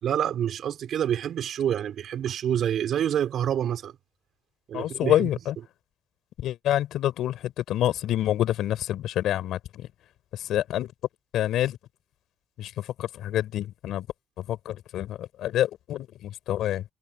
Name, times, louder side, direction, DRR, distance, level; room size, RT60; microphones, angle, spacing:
voice 1, 0.0-3.9 4.7-5.3, right 9 dB, 70° right, 4.7 m, -27 dB
voice 2, 4.7-5.5 6.4-9.9 10.3-10.9 11.3-11.8 12.6-14.1 14.5-16.8, left 12 dB, 80° left, 4.7 m, -27 dB
cardioid pair, 90°, 0 cm